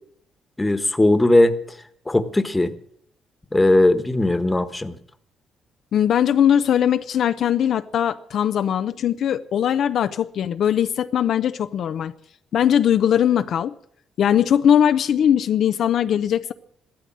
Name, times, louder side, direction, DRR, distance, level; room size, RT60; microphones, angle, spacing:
voice 1, 0.6-1.6 2.1-2.7 3.5-5.0, left 1 dB, 15° left, 1.3 m, -18 dB
voice 2, 5.9-12.1 12.5-13.7 14.2-16.5, left 9 dB, 65° left, 0.6 m, -20 dB
15.0 x 13.0 x 7.5 m
cardioid pair, 90°, 0 cm